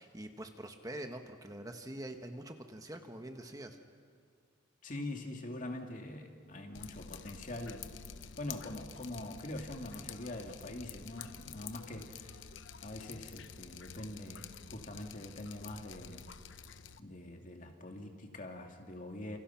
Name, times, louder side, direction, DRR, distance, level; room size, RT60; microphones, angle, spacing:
voice 1, 0.0-3.8, right 1 dB, 20° right, 5 dB, 1.4 m, -45 dB
voice 2, 4.8-7.9 8.4-12.5 12.8-16.3 17.0-19.4, left 1 dB, 45° left, 3 dB, 2.5 m, -44 dB
Drip, 6.7-17.0, left 7 dB, 75° left, 0.9 m, -49 dB
30.0 x 28.0 x 5.9 m, 2.2 s
head